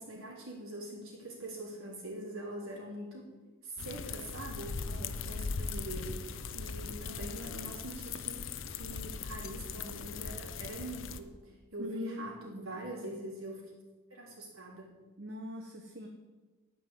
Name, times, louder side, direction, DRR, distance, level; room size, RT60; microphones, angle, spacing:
voice 1, 0.0-3.3 3.6-13.7 14.1-15.0, right 1 dB, 75° right, -3 dB, 3.7 m, -44 dB
sound 1, 3.8-11.2, left 5 dB, 60° left, 0.7 m, -39 dB
voice 2, 11.8-12.7 15.2-16.1, left 2 dB, 50° right, 2 dB, 1.1 m, -42 dB
12.5 x 5.6 x 8.1 m, 1.2 s
head